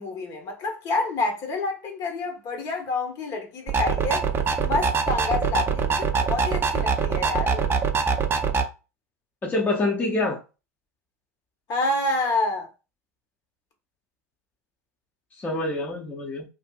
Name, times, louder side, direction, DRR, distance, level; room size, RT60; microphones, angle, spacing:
voice 1, 0.0-4.2 4.6-7.7 11.7-12.7, left 2 dB, 50° left, 1.1 m, -28 dB
sound 1, 3.7-8.6, right 5 dB, 25° right, 0.5 m, -23 dB
voice 2, 9.4-10.4 15.4-16.5, left 2 dB, 20° left, 0.6 m, -26 dB
2.7 x 2.6 x 2.3 m
hypercardioid pair, 85°, 9 cm